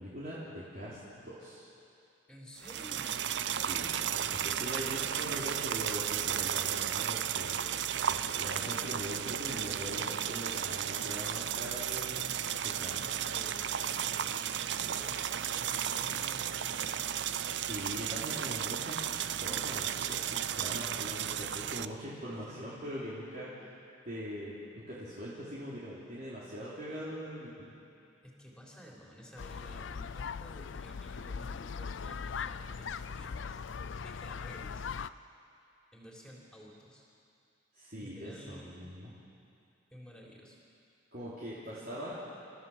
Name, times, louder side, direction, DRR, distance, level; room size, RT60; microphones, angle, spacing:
voice 1, 0.0-1.7 3.6-7.5 8.1-12.4 12.6-13.1 17.6-19.0 19.4-23.7 24.1-27.7 37.7-39.1 41.1-42.2, equal, 45° right, -9 dB, 3.7 m, -42 dB
voice 2, 2.3-3.2 12.6-17.1 22.5-22.8 28.2-33.6 34.0-34.9 35.9-37.1 38.0-38.9 39.9-40.6, equal, 5° left, -3 dB, 3.8 m, -52 dB
sound 1, 2.6-21.9, right 9 dB, 60° right, 0.5 m, -34 dB
sound 2, 29.4-35.1, left 6 dB, 75° left, 0.5 m, -40 dB
29.5 x 14.5 x 7.4 m, 2.5 s
head